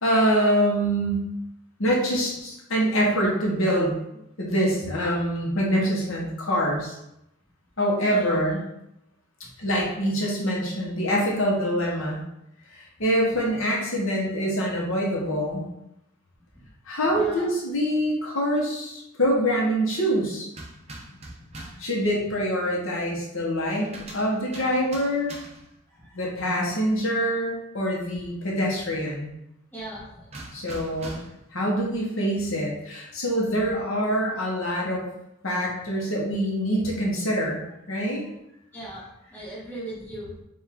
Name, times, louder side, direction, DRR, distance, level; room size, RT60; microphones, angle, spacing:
voice 1, 0.0-1.2 1.8-7.0 7.8-8.6 9.6-12.2 12.7-15.7 16.9-20.5 21.8-25.3 26.1-29.3 30.5-31.2 31.5-35.0 35.4-37.6 37.9-38.2, equal, 65° left, -2 dB, 0.9 m, -25 dB
voice 2, 17.1-17.5 21.2-21.3 25.9-26.3 29.7-30.5 37.6-37.7 38.1-38.3 38.7-40.4, right 1 dB, 10° left, -7 dB, 1.1 m, -40 dB
sound 1, 20.5-21.9 23.7-25.8 30.3-31.5, right 1 dB, 30° right, 0.6 m, -42 dB
4.6 x 2.5 x 3.5 m, 0.82 s
head